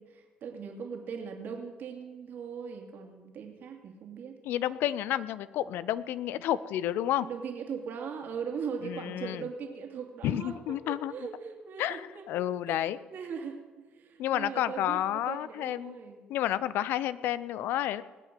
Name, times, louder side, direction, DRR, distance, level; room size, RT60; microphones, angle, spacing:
voice 1, 0.0-4.4 7.2-12.3 12.7-12.8 13.1-16.2, right 6 dB, 60° right, 2 dB, 2.7 m, -39 dB
voice 2, 4.4-7.3 8.8-9.5 10.2-11.1 11.8-13.0 14.2-16.0 16.3-18.0, left 12 dB, 70° left, 17 dB, 0.7 m, -30 dB
20.0 x 8.3 x 7.6 m, 1.3 s
hypercardioid pair, 60°, 4 cm